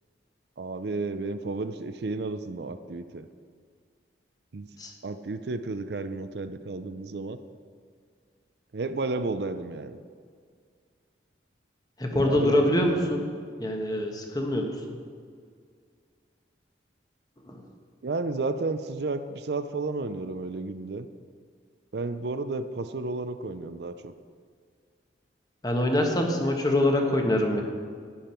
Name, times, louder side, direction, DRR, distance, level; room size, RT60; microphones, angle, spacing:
voice 1, 0.6-3.3 4.5-4.7 5.0-7.4 8.7-10.0 12.1-13.1 18.0-21.1 21.9-24.1, right 3 dB, 65° right, 10 dB, 0.5 m, -32 dB
voice 2, 12.0-13.3 13.6-15.0 17.4-17.6 25.6-27.6, left 1 dB, 20° left, 2 dB, 1.2 m, -24 dB
11.5 x 9.5 x 4.4 m, 2.1 s
head